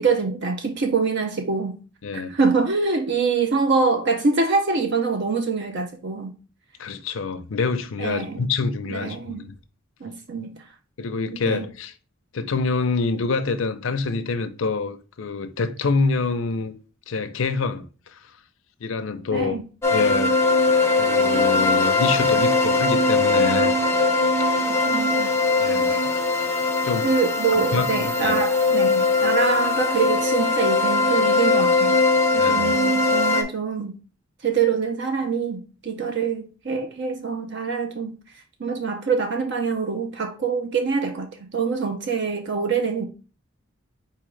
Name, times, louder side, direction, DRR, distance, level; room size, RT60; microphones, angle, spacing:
voice 1, 0.0-1.8 2.3-6.3 8.0-8.5 8.9-9.5 10.0-10.5 11.3-11.7 19.3-19.6 24.6-25.3 25.9-26.1 27.0-32.0 32.3-33.9 34.4-38.1 38.6-43.1, right 5 dB, 60° right, 0.6 m, -25 dB
voice 2, 2.0-2.4 6.8-9.5 11.0-11.9 12.3-16.7 17.1-18.2 18.8-19.6 19.9-20.4 21.0-23.7 25.6-25.9 26.8-27.1 27.6-28.4 32.4-32.7, left 4 dB, 75° left, 0.6 m, -26 dB
sound 1, 19.8-33.4, left 3 dB, 15° left, 0.5 m, -20 dB
4.4 x 3.6 x 3.1 m
head